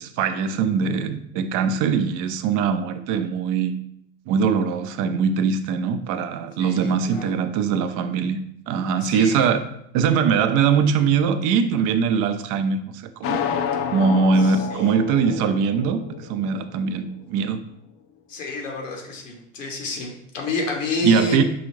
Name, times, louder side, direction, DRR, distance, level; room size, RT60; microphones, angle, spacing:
voice 1, 0.0-3.7 4.3-8.4 8.7-9.6 9.9-13.4 13.9-17.6 21.0-21.4, right 6 dB, 55° right, 10 dB, 0.5 m, -22 dB
voice 2, 6.6-7.3 9.0-9.5 14.4-14.8 18.3-21.4, left 3 dB, 90° left, 0 dB, 1.0 m, -29 dB
sound 1, 13.2-17.2, left 7 dB, 40° left, 0.5 m, -29 dB
4.7 x 2.5 x 3.1 m, 0.73 s
hypercardioid pair, 75°, 37 cm